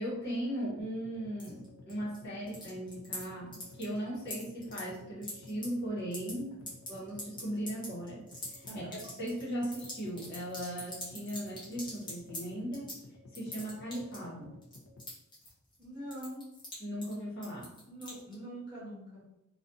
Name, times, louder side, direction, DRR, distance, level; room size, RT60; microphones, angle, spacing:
voice 1, 0.0-6.5 6.9-12.9 13.3-14.6 16.8-17.7, equal, 55° left, -6 dB, 1.0 m, -38 dB
sound 1, 0.8-15.1, left 2 dB, 75° left, 0.5 m, -54 dB
sound 2, 1.4-2.2 2.5-3.2 3.5-4.0 4.3-5.6 6.0-6.3 6.7-12.4 12.7-13.0 13.3-14.3 14.6-15.8 16.1-16.7 17.0-17.1 17.4-18.3, left 1 dB, 20° left, 0.9 m, -42 dB
voice 2, 8.6-9.1 15.8-16.5 17.8-19.2, right 1 dB, 20° right, -7 dB, 0.9 m, -44 dB
2.4 x 2.3 x 2.6 m, 0.84 s
head